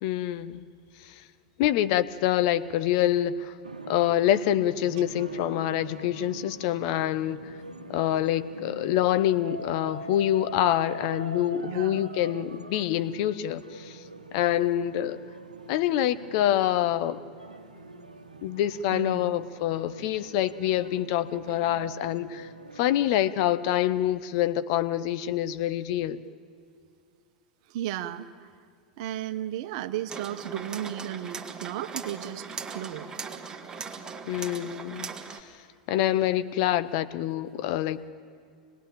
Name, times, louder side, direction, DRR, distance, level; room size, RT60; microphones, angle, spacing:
voice 1, 0.0-0.7 1.0-1.1 1.6-3.5 3.9-7.4 7.9-14.0 14.3-15.2 15.7-17.2 18.4-22.5 22.8-26.2 34.3-35.1 35.9-38.0, left 12 dB, 50° left, 14 dB, 0.7 m, -26 dB
sound 1, 3.6-23.3, right 2 dB, 85° right, 1.0 m, -43 dB
voice 2, 11.7-12.0 18.9-19.4 27.7-28.5 29.0-33.1, right 11 dB, 50° right, 11 dB, 1.0 m, -34 dB
sound 2, 30.1-35.4, right 5 dB, 20° right, 1.5 m, -39 dB
26.0 x 19.0 x 8.9 m, 2.2 s
figure-of-eight pair, 85°, 4 cm